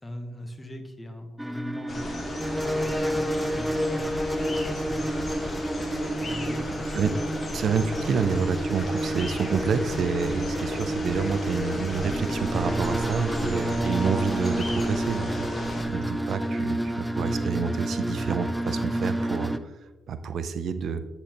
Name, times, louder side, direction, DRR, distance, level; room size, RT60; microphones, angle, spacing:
voice 1, 0.0-5.7 6.2-7.7, left 1 dB, 20° left, 5 dB, 1.1 m, -41 dB
sound 1, 1.4-19.6, right 1 dB, 5° right, 0.4 m, -29 dB
sound 2, 1.9-15.8, left 2 dB, 40° left, 1.2 m, -35 dB
voice 2, 7.5-15.5 15.9-19.7 20.1-21.0, right 6 dB, 65° right, 11 dB, 0.4 m, -28 dB
8.2 x 4.2 x 2.9 m, 1.1 s
hypercardioid pair, 45°, 0 cm